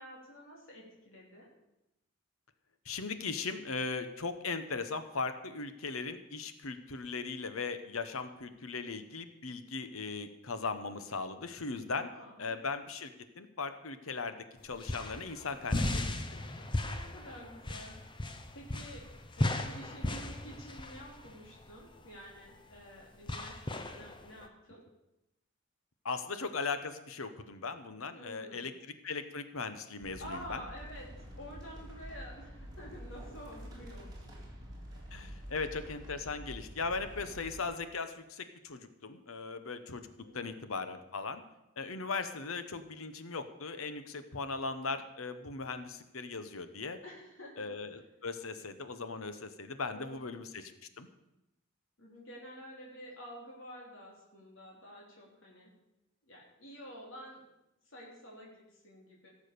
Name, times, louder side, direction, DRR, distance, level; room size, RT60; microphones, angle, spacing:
voice 1, 0.0-1.5 11.9-12.6 16.7-18.0 18.5-19.1 19.4-24.8 28.1-28.7 30.2-31.1 31.4-34.3 34.9-35.0 40.2-40.5 47.0-47.7 49.8-50.2 52.0-55.7 56.3-57.4 57.9-59.3, equal, 70° left, -3 dB, 3.5 m, -49 dB
voice 2, 2.9-12.1 12.4-13.1 13.4-14.4 14.6-16.5 26.0-28.7 29.0-30.6 35.1-40.1 40.3-41.4 41.8-47.0 47.6-50.6 51.0-51.1, left 4 dB, 85° left, 10 dB, 1.1 m, -38 dB
sound 1, 14.6-24.5, left 1 dB, 25° left, 0.9 m, -37 dB
sound 2, 30.0-37.6, equal, 20° right, 3.7 m, -47 dB
17.0 x 7.3 x 6.8 m, 0.89 s
head